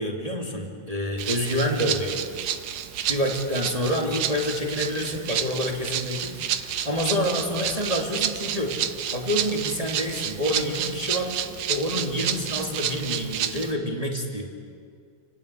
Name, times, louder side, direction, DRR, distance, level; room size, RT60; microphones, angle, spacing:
voice 1, 0.0-2.2 3.1-8.8 9.1-11.4 11.7-14.5, equal, 10° right, 0 dB, 1.8 m, -27 dB
Rattle (instrument), 1.2-13.7, right 10 dB, 85° right, 1.5 m, -30 dB
29.0 x 19.5 x 8.3 m, 2.2 s
omnidirectional pair, 4.5 m